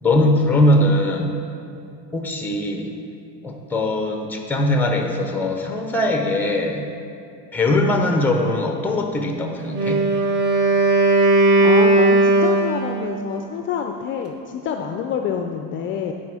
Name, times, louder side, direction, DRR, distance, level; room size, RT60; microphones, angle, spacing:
voice 1, 0.0-1.4 2.1-2.9 3.4-6.9 7.5-10.0, left 1 dB, 5° left, 4 dB, 0.6 m, -20 dB
Wind instrument woodwind instrument, 9.7-13.2, right 2 dB, 35° right, 0.9 m, -17 dB
voice 2, 11.6-16.1, left 7 dB, 40° left, 4 dB, 0.4 m, -27 dB
11.5 x 4.4 x 4.8 m, 2.5 s
cardioid pair, 160°, 31 cm